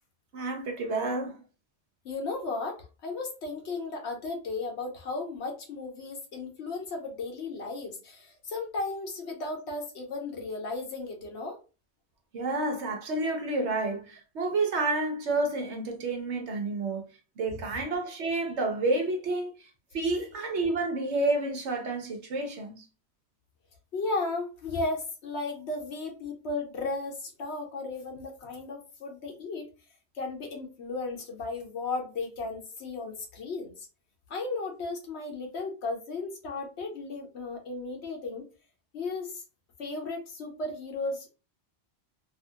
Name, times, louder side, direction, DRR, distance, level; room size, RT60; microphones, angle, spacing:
voice 1, 0.3-1.4 12.3-17.0 17.4-19.5 19.9-22.8, right 2 dB, 85° right, 1.1 m, -29 dB
voice 2, 2.0-11.6 17.5-17.6 23.9-29.7 30.1-33.9 34.3-38.4 38.9-39.4 39.8-41.3, left 3 dB, 75° left, 1.1 m, -35 dB
2.9 x 2.5 x 2.8 m
omnidirectional pair, 1.1 m